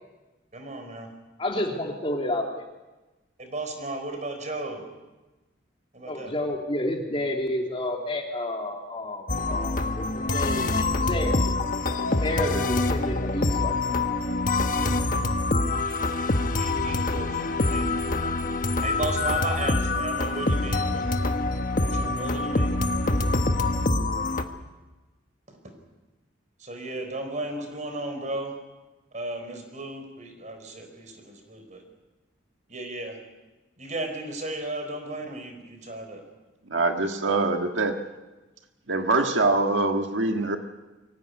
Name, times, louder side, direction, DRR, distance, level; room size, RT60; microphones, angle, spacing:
voice 1, 0.5-1.1 3.4-4.8 5.9-6.3 16.5-18.1 18.8-21.2 21.9-22.7 25.5-25.7 26.6-28.5 29.1-31.8 32.7-33.2 33.8-36.2, right 2 dB, 40° right, 5 dB, 4.6 m, -35 dB
voice 2, 1.4-2.6 6.0-11.4 12.2-13.8, left 1 dB, 30° left, 1 dB, 2.9 m, -30 dB
sound 1, 9.3-24.4, left 2 dB, 45° left, 1.3 m, -25 dB
voice 3, 36.7-38.0 38.9-40.6, right 2 dB, 75° right, 4 dB, 1.6 m, -24 dB
23.5 x 16.5 x 9.7 m, 1.1 s
head